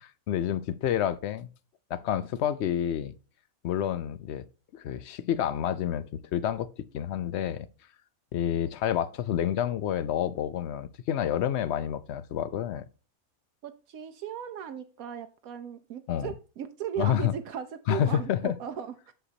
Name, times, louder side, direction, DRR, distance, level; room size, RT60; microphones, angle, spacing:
voice 1, 0.0-1.5 1.9-3.1 3.6-4.5 4.7-6.7 6.9-7.7 8.3-12.8 16.1-16.3 17.0-17.3 17.9-18.5, left 10 dB, 65° left, 0.7 m, -29 dB
voice 2, 13.6-19.1, right 8 dB, 75° right, 1.1 m, -37 dB
7.9 x 6.4 x 2.7 m
omnidirectional pair, 1.5 m